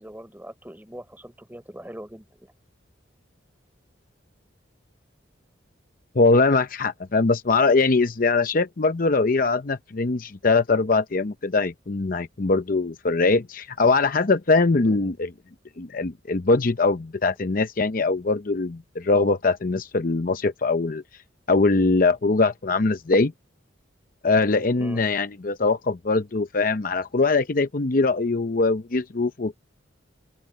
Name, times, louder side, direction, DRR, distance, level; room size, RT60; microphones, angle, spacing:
voice 1, 0.0-2.5 14.8-15.1 24.8-25.0, equal, 10° right, 4.5 m, -42 dB
voice 2, 6.2-15.3 15.8-21.0 21.5-23.3 24.2-29.6, left 3 dB, 50° left, 0.7 m, -22 dB
open air
head